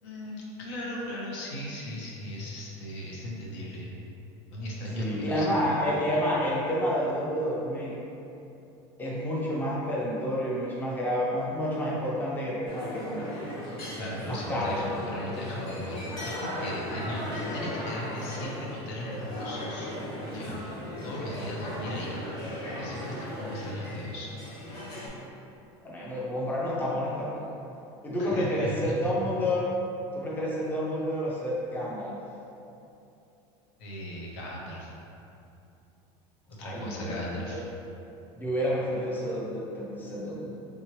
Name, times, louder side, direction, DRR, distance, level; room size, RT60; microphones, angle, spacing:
voice 1, 0.0-3.9 4.5-5.5 13.9-19.9 20.3-20.6 21.0-22.2 22.7-24.3 28.2-29.1 33.8-34.9 36.6-37.6, left 1 dB, 80° left, -3 dB, 0.7 m, -37 dB
voice 2, 5.0-8.0 9.0-13.3 14.2-14.8 25.8-27.4 28.0-29.6 30.1-32.2 36.6-37.6 38.3-40.6, equal, 15° left, -5 dB, 0.6 m, -29 dB
sound 1, 12.7-25.1, left 1 dB, 50° left, 1.3 m, -37 dB
3.5 x 2.9 x 2.9 m, 2.8 s
supercardioid pair, 140°, 14 cm